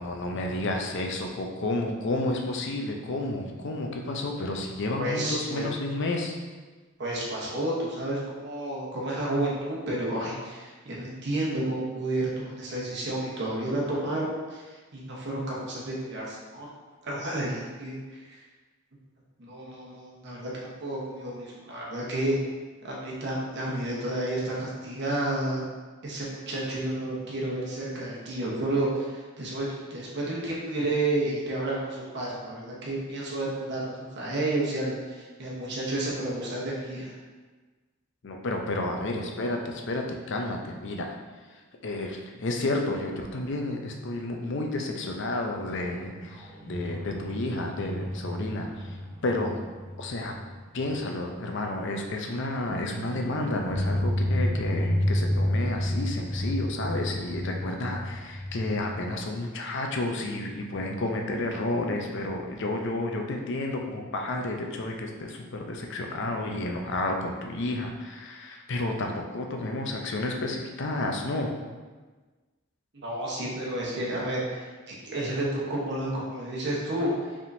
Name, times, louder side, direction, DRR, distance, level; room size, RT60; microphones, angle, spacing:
voice 1, 0.0-6.4 38.2-41.2 41.5-49.0 49.2-49.6 50.0-50.3 50.7-71.5, left 2 dB, 60° left, 2 dB, 0.5 m, -31 dB
voice 2, 5.0-5.7 7.0-16.7 17.0-18.4 19.4-20.5 20.8-22.4 22.8-25.6 26.0-37.2 72.9-77.3, right 1 dB, 55° right, -5 dB, 0.9 m, -31 dB
sound 1, 45.7-51.1 51.4-51.5 52.7-59.3, equal, 5° left, 1.0 m, -31 dB
5.1 x 3.6 x 2.6 m, 1.3 s
head